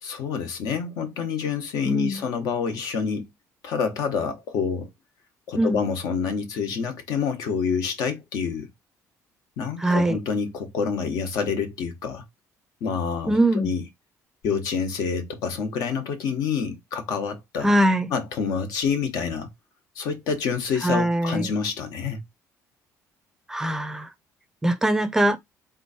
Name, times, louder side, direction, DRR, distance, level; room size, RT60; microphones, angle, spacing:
voice 1, 0.0-3.3 3.6-4.9 5.5-8.7 9.6-12.2 12.8-13.9 14.4-17.7 18.1-19.5 19.9-22.2, left 6 dB, 75° left, 1.3 m, -27 dB
voice 2, 1.8-2.2 5.6-5.8 9.8-10.2 13.3-13.7 17.6-18.1 20.8-21.5 23.5-24.1 24.6-25.4, right 1 dB, 10° right, 0.5 m, -22 dB
3.9 x 3.0 x 4.2 m
cardioid pair, 160°, 6 cm